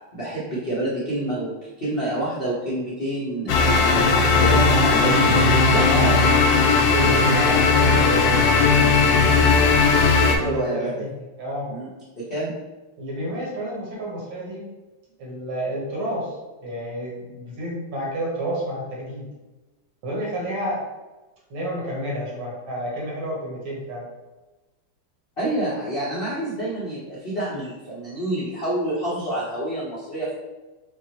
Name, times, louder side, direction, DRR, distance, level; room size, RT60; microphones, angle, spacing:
voice 1, 0.1-1.5 1.8-5.4 5.7-6.1 10.4-11.1 11.7-11.9 12.2-12.5 25.4-30.3, right 1 dB, 50° left, -9 dB, 0.6 m, -28 dB
sound 1, 3.5-10.4, left 4 dB, 80° left, 1.0 m, -17 dB
voice 2, 5.9-6.2 6.9-9.5 10.1-11.7 13.0-14.6 15.2-16.4 16.6-19.3 20.0-20.8 21.5-24.1, equal, 65° right, -4 dB, 1.9 m, -30 dB
5.9 x 2.1 x 2.9 m, 1.1 s
omnidirectional pair, 2.4 m